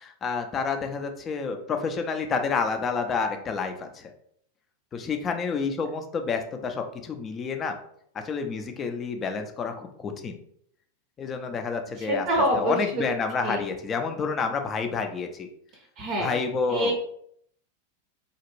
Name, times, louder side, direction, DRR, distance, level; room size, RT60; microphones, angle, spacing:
voice 1, 0.0-4.1 4.9-7.7 8.1-10.4 11.2-12.3 12.5-15.5 16.2-17.0, left 5 dB, 25° left, 5 dB, 0.5 m, -29 dB
voice 2, 12.0-13.1 13.4-13.6 16.0-16.3 16.7-17.0, right 1 dB, 40° right, 2 dB, 0.6 m, -26 dB
3.9 x 2.4 x 3.0 m, 0.67 s
figure-of-eight pair, 90°, 0 cm